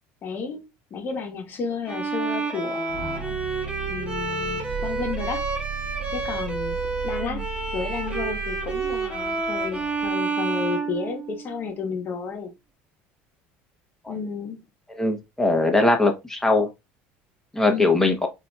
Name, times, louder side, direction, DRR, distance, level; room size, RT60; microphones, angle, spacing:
voice 1, 0.2-0.6 0.9-3.4 3.9-5.4 6.1-6.8 7.0-7.4 7.7-12.5 14.1-14.6 17.7-17.9, left 5 dB, 40° left, 1.1 m, -32 dB
Bowed string instrument, 1.9-11.7, right 3 dB, 20° right, 0.9 m, -29 dB
sound 1, 2.9-10.1, right 8 dB, 65° right, 0.9 m, -35 dB
voice 2, 14.9-16.7 17.5-18.3, left 2 dB, 10° left, 0.8 m, -21 dB
3.9 x 2.7 x 2.3 m
supercardioid pair, 110°, 5 cm